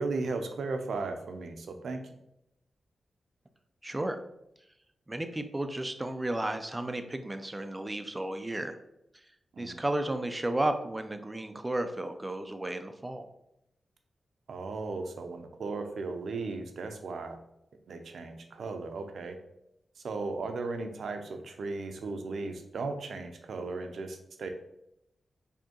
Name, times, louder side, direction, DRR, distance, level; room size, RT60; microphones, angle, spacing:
voice 1, 0.0-2.0 9.5-9.8 14.5-17.4 17.9-19.4 20.0-24.5, right 3 dB, 75° right, 6 dB, 0.5 m, -36 dB
voice 2, 3.8-4.2 5.1-8.8 9.6-13.3, right 1 dB, 15° right, 8 dB, 0.3 m, -33 dB
4.4 x 2.7 x 2.9 m, 0.83 s
wide cardioid pair, 140°, 0 cm